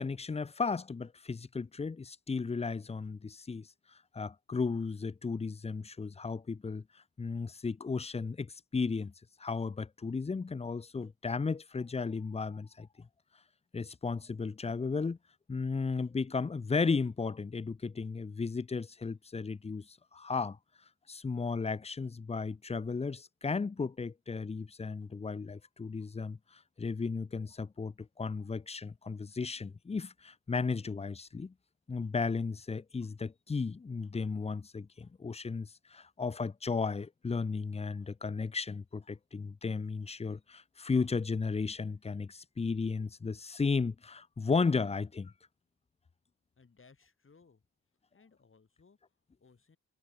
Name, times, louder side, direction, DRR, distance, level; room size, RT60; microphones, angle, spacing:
voice 1, 0.0-3.7 4.1-6.8 7.2-9.1 9.4-12.9 13.7-15.2 15.5-19.8 20.1-20.6 21.1-26.4 26.8-31.5 31.9-45.3, left 4 dB, 15° left, 0.5 m, -34 dB
voice 2, 46.6-47.7 48.1-49.8, left 4 dB, 35° left, 5.3 m, -63 dB
cardioid pair, 90°, 37 cm